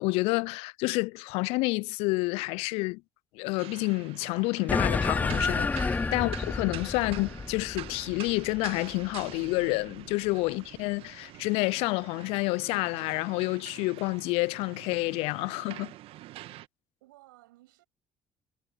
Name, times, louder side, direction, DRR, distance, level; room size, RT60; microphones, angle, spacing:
voice 1, 0.0-3.0 3.3-15.9, left 25 dB, 65° left, 0.6 m, -29 dB
sound 1, 3.6-16.7, right 16 dB, 60° right, 1.9 m, -46 dB
sound 2, 4.7-9.5, left 3 dB, 15° left, 0.3 m, -30 dB
voice 2, 17.0-17.8, right 18 dB, 75° right, 7.1 m, -57 dB
figure-of-eight pair, 55°, 11 cm